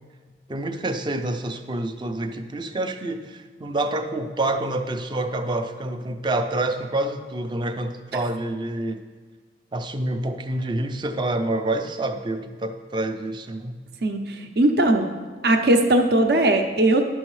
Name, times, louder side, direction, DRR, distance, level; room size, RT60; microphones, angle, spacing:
voice 1, 0.5-9.0 9.7-13.8, right 2 dB, 25° right, 7 dB, 0.4 m, -27 dB
voice 2, 14.0-15.1 15.4-17.1, right 1 dB, 65° right, 5 dB, 0.6 m, -19 dB
10.5 x 6.2 x 3.2 m, 1.5 s
head